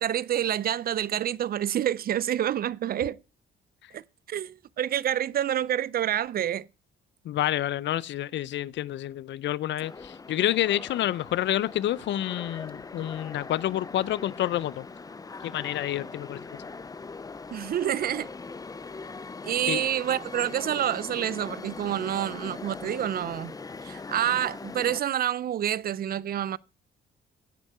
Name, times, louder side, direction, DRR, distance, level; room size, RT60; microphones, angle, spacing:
voice 1, 0.0-3.2 3.9-4.0 4.3-6.7 17.5-18.3 19.4-23.5 23.8-26.6, right 11 dB, 50° right, 0.4 m, -28 dB
voice 2, 7.2-14.9 15.4-16.4 19.7-19.8, left 13 dB, 65° left, 0.5 m, -28 dB
sound 1, 9.8-25.0, left 4 dB, 20° left, 0.5 m, -41 dB
15.5 x 5.4 x 4.8 m
cardioid pair, 90°, 20 cm